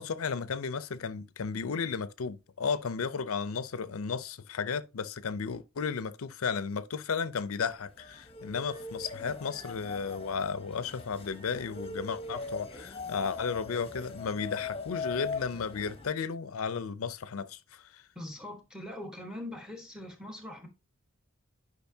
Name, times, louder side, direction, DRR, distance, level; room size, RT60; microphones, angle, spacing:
voice 1, 0.0-18.0, left 5 dB, 85° left, 0.5 m, -34 dB
sound 1, 7.6-16.1, left 4 dB, 25° left, 0.9 m, -41 dB
voice 2, 18.1-20.7, left 1 dB, 5° right, 1.3 m, -42 dB
10.5 x 5.1 x 2.7 m
head